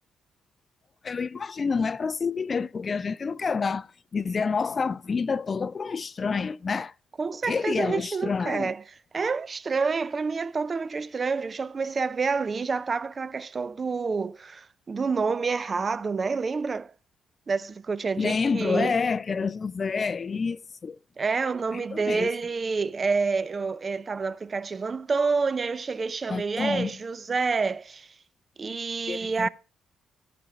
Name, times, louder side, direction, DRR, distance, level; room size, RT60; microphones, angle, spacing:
voice 1, 1.0-6.9 7.5-8.7 18.2-21.0 21.7-22.3 26.3-26.9 29.1-29.5, left 5 dB, 40° left, 0.4 m, -28 dB
voice 2, 7.2-8.8 9.1-16.9 17.5-18.9 21.2-28.1 28.6-29.5, right 4 dB, 35° right, 0.5 m, -28 dB
14.5 x 5.1 x 5.6 m
cardioid pair, 90°, 0 cm